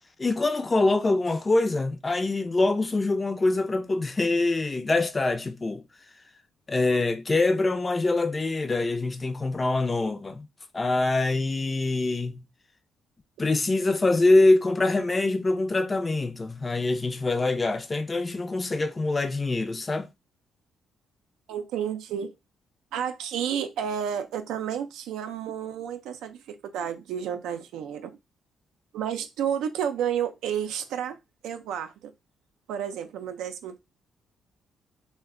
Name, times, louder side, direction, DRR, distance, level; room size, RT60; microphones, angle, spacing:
voice 1, 0.2-5.8 6.7-10.5 10.7-12.4 13.4-20.1, left 2 dB, 25° left, 0.4 m, -24 dB
voice 2, 21.5-22.3 22.9-28.2 28.9-31.2 31.4-32.1 32.7-33.8, right 8 dB, 90° right, 0.4 m, -31 dB
2.2 x 2.2 x 3.6 m
cardioid pair, 90°, 0 cm